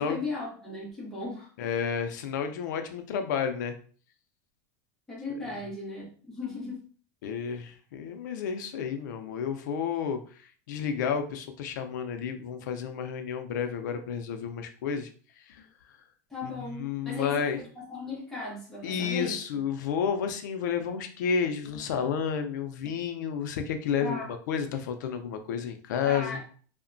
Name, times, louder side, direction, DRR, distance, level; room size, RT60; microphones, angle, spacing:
voice 1, 0.0-1.5 5.1-6.8 16.3-19.4 24.0-24.3 26.0-26.4, left 3 dB, 5° left, -6 dB, 0.8 m, -37 dB
voice 2, 1.6-3.8 7.2-15.1 15.5-15.7 16.4-17.6 18.8-26.4, left 7 dB, 90° left, 7 dB, 0.4 m, -31 dB
2.8 x 2.1 x 2.5 m, 0.43 s
supercardioid pair, 165°, 10 cm